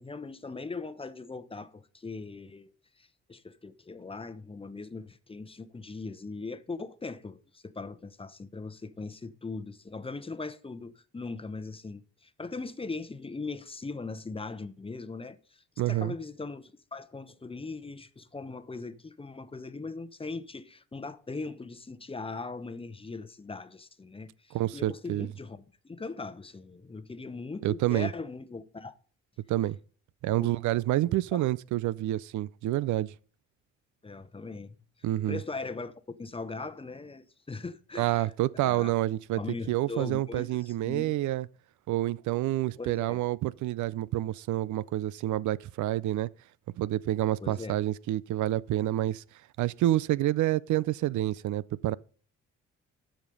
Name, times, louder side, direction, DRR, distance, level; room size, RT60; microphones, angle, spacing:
voice 1, 0.0-28.9 31.3-31.5 34.0-34.8 35.3-38.9 39.4-41.1 42.8-43.2 47.4-47.8, left 3 dB, 20° left, 0.8 m, -40 dB
voice 2, 15.8-16.1 24.5-25.3 27.6-28.1 29.5-29.8 30.2-33.1 35.0-35.4 38.0-39.4 39.7-41.5 41.9-46.3 46.8-49.2 49.6-52.0, right 15 dB, 75° right, 0.5 m, -28 dB
12.5 x 5.1 x 5.4 m
cardioid pair, 90°, 30 cm